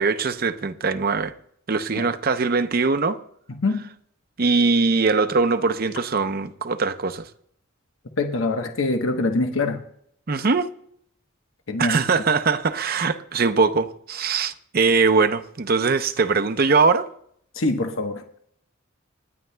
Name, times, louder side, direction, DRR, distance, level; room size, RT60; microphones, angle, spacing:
voice 1, 0.0-1.3 1.7-3.2 4.4-7.3 10.3-10.7 11.8-17.1, right 4 dB, 45° right, 0.7 m, -21 dB
voice 2, 8.2-9.8 11.7-12.0 17.6-18.2, left 2 dB, 75° left, 1.1 m, -24 dB
28.0 x 10.0 x 2.2 m
head